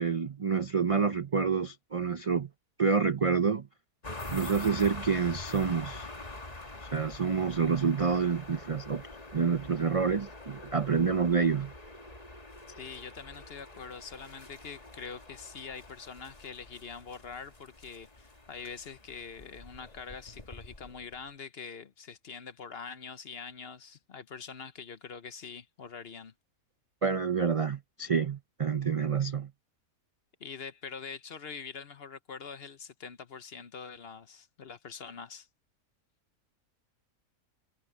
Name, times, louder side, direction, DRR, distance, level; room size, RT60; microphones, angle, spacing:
voice 1, 0.0-2.5 2.8-3.7 4.3-6.1 6.9-9.0 9.3-11.7 27.0-29.5, right 5 dB, 65° right, 0.3 m, -28 dB
sound 1, 4.0-21.3, left 2 dB, 25° left, 2.2 m, -45 dB
voice 2, 12.7-26.3 30.4-35.5, left 6 dB, 50° left, 1.0 m, -44 dB
omnidirectional pair, 1.5 m